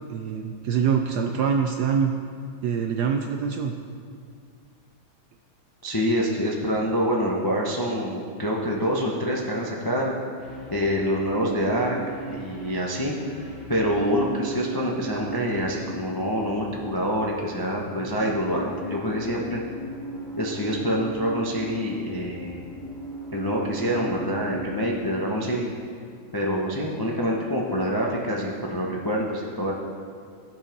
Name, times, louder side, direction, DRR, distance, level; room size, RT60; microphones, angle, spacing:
voice 1, 0.1-2.1 2.6-3.7, right 7 dB, 75° right, 4 dB, 0.9 m, -24 dB
voice 2, 5.8-10.1 10.7-12.0 12.3-13.1 13.7-19.6 20.4-22.6 23.3-25.7 26.3-29.7, equal, 35° left, -2 dB, 0.3 m, -26 dB
sound 1, 10.4-25.0, right 2 dB, 10° left, 1.9 m, -38 dB
14.0 x 5.5 x 5.2 m, 2.2 s
omnidirectional pair, 2.2 m